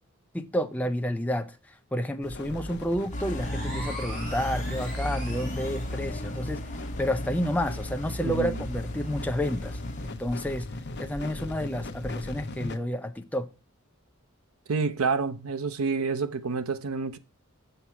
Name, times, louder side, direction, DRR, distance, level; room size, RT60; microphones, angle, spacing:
voice 1, 0.3-6.7 7.0-10.7 11.0-13.5, equal, 5° left, 0.5 m, -30 dB
sound 1, 2.2-12.8, left 2 dB, 55° left, 0.8 m, -39 dB
sound 2, 3.1-10.1, equal, 35° left, 1.2 m, -35 dB
sound 3, 3.3-6.0, right 1 dB, 50° right, 3.0 m, -41 dB
voice 2, 8.2-8.6 14.7-17.2, right 4 dB, 85° right, 0.7 m, -28 dB
7.2 x 5.8 x 4.5 m
head